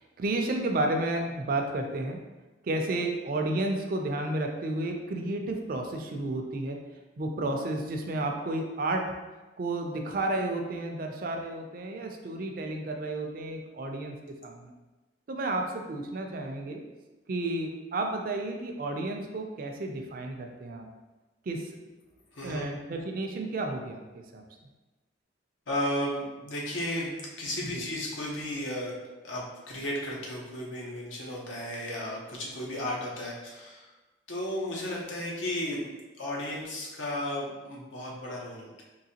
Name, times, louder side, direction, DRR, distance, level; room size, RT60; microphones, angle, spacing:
voice 1, 0.2-2.2 2.6-6.8 7.2-9.0 9.6-14.2 14.4-14.7 15.3-16.8 17.3-20.9 21.5-21.7 22.4-24.4 27.7-27.9, right 2 dB, 45° right, 3 dB, 0.4 m, -32 dB
voice 2, 22.3-22.6 25.7-28.9 29.2-33.9 34.3-35.9 36.2-38.8, left 1 dB, 85° left, -2 dB, 0.8 m, -34 dB
3.8 x 2.7 x 2.8 m, 1.2 s
head